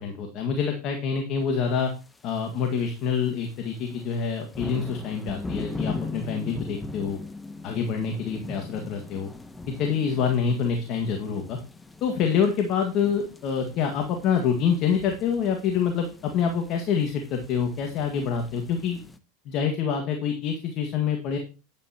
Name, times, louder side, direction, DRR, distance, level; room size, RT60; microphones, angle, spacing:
voice 1, 0.0-1.9 2.2-7.2 7.6-9.3 9.8-11.6 12.0-19.0 19.5-21.4, left 6 dB, 45° left, 4 dB, 1.8 m, -26 dB
sound 1, 2.1-2.4 2.8-3.1 3.4-19.2, left 3 dB, 10° left, 0.8 m, -40 dB
10.0 x 9.4 x 2.9 m, 0.32 s
supercardioid pair, 120°, 0 cm